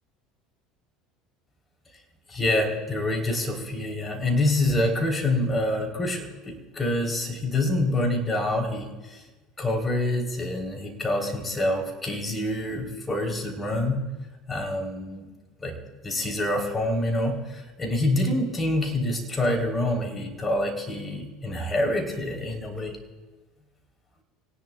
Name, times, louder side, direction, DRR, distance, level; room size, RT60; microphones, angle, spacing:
voice 1, 2.3-9.2 9.6-14.0 14.5-15.3 15.6-15.8 16.0-23.0, left 1 dB, 20° left, 2 dB, 3.5 m, -26 dB
25.0 x 18.5 x 2.3 m, 1.2 s
hypercardioid pair, 70°, 0 cm